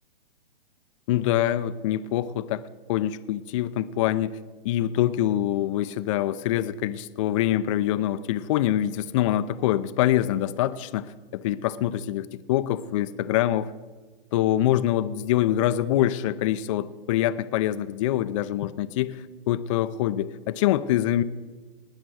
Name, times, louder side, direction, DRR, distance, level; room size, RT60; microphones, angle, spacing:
voice 1, 1.1-2.6 2.9-4.4 4.6-11.1 11.3-13.7 14.3-21.2, left 12 dB, 35° left, 13 dB, 0.4 m, -25 dB
19.5 x 6.6 x 6.2 m, 1.3 s
hypercardioid pair, 140°, 30 cm